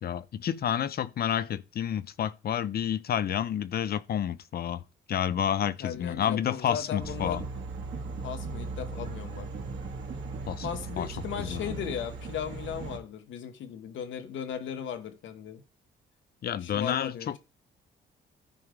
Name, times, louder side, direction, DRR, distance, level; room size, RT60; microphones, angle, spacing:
voice 1, 0.0-4.8 5.1-7.4 10.5-10.7 11.0-11.1 11.4-11.9 16.4-17.4, left 9 dB, 50° left, 0.6 m, -30 dB
voice 2, 5.8-7.4 8.2-9.5 10.6-15.6 16.6-17.4, left 8 dB, 70° left, 1.1 m, -37 dB
sound 1, 7.0-13.0, right 4 dB, 65° right, 2.1 m, -38 dB
14.0 x 4.8 x 3.7 m
cardioid pair, 90°, 20 cm